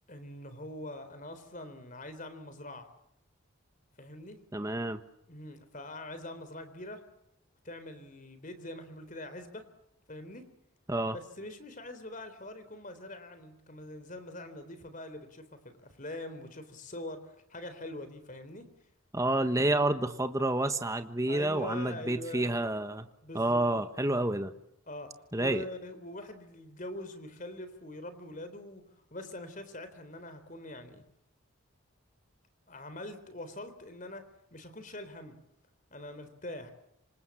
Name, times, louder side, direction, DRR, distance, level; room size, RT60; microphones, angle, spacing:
voice 1, 0.1-2.9 4.0-4.4 5.3-7.0 7.6-9.7 10.1-10.5 11.1-18.7 21.3-22.5 23.2-23.8 24.1-24.4 24.9-28.8 29.1-31.0 32.7-34.2 34.5-35.4 35.9-36.7, left 1 dB, 35° left, 10 dB, 3.6 m, -43 dB
voice 2, 4.5-5.0 10.9-11.2 19.1-23.1 23.3-24.5 25.3-25.6, right 1 dB, 15° right, 8 dB, 1.3 m, -29 dB
27.0 x 26.5 x 7.4 m, 0.78 s
head